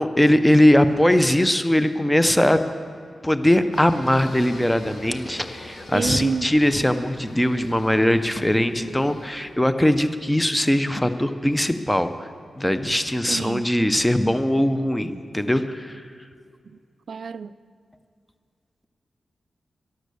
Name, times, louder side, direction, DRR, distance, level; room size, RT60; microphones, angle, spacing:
voice 1, 0.0-2.6 3.2-12.3 12.6-16.0, left 1 dB, 5° left, 0.5 m, -20 dB
Singing, 3.7-9.5, left 1 dB, 70° left, 3.4 m, -42 dB
voice 2, 5.9-6.5 13.3-13.7 17.1-17.5, right 5 dB, 55° right, 0.3 m, -28 dB
12.5 x 11.5 x 6.8 m
wide cardioid pair, 165°, 0 cm